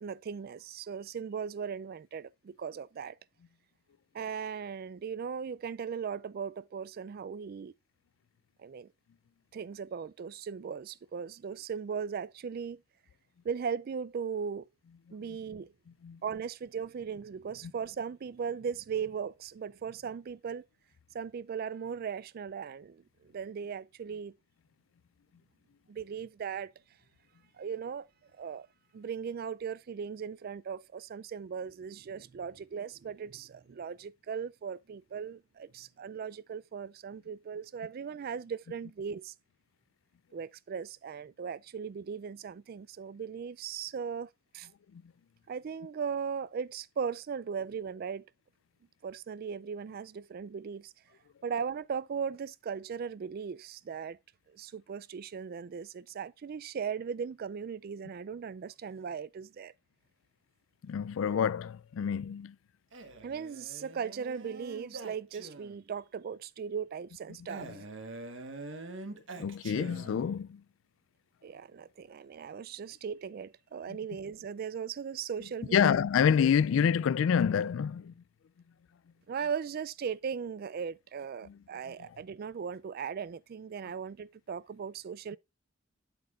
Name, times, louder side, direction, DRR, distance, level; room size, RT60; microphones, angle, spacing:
voice 1, 0.0-3.2 4.1-7.7 8.6-8.9 9.5-12.8 13.4-14.7 15.1-15.7 16.2-20.7 21.1-24.3 25.9-26.7 27.6-28.1 28.4-28.7 28.9-39.3 40.3-44.7 45.5-48.3 49.0-50.9 51.4-54.2 54.5-59.7 63.2-67.8 71.4-76.0 79.3-85.4, right 6 dB, 50° right, 0.3 m, -38 dB
voice 2, 60.8-62.6 67.6-67.7 69.4-70.6 75.7-78.1 81.5-81.6, left 7 dB, 90° left, 0.3 m, -27 dB
Male speech man speaking, 62.9-65.9 67.5-70.5, right 2 dB, 75° right, 1.3 m, -45 dB
8.6 x 7.9 x 2.4 m
head